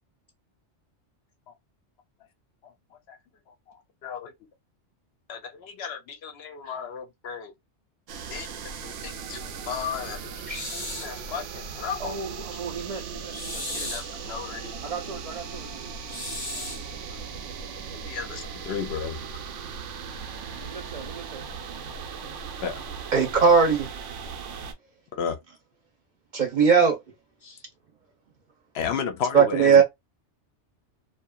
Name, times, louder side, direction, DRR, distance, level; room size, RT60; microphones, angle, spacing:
voice 1, 2.6-3.2 3.5-4.3 5.3-7.5 8.3-8.5 8.8-10.5 11.0-12.4 13.7-14.9 16.5-16.7 17.1-17.2 18.1-19.2 22.6-22.8 25.1-25.4 28.7-29.8, left 7 dB, 65° left, 0.8 m, -34 dB
sound 1, 8.1-24.7, right 6 dB, 90° right, 0.9 m, -38 dB
sound 2, 10.5-11.2 13.3-14.2 16.1-16.9, left 1 dB, 20° left, 0.9 m, -35 dB
voice 2, 12.0-13.9 14.8-15.9 20.6-21.5 27.4-27.7, right 4 dB, 65° right, 0.3 m, -38 dB
voice 3, 23.1-23.9 26.3-27.0 29.3-29.8, right 6 dB, 50° right, 0.7 m, -18 dB
2.7 x 2.4 x 2.2 m
omnidirectional pair, 1.2 m